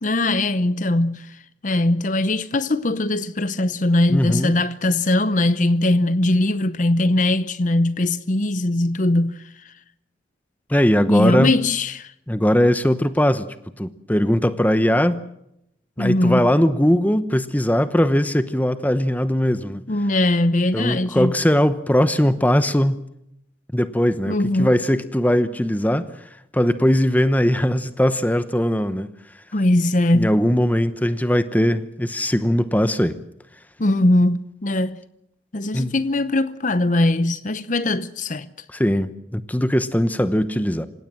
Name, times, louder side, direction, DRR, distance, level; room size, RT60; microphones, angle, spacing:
voice 1, 0.0-9.7 11.1-12.1 16.0-16.4 19.9-21.3 24.3-24.7 29.5-30.4 33.8-35.0 35.5-38.5, left 1 dB, 40° left, 0.8 m, -20 dB
voice 2, 4.1-4.5 10.7-11.5 12.3-13.5 13.8-15.2 16.0-19.8 20.7-23.0 23.7-29.1 30.1-33.2 35.7-35.9 38.7-40.8, equal, 10° left, 0.9 m, -20 dB
27.0 x 17.0 x 7.6 m
head